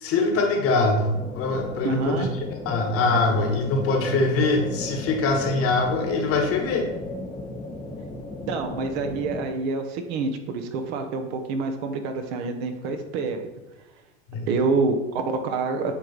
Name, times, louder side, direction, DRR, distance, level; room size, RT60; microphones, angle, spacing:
voice 1, 0.0-2.3 2.6-6.9 14.3-14.5, left 3 dB, 35° left, 4 dB, 1.2 m, -23 dB
sound 1, 1.1-9.5, left 2 dB, 15° left, 0.8 m, -35 dB
voice 2, 1.8-2.3 8.5-13.4 14.5-15.9, right 4 dB, 55° right, 6 dB, 1.0 m, -27 dB
8.3 x 3.3 x 4.0 m, 1.0 s
hypercardioid pair, 100°, 38 cm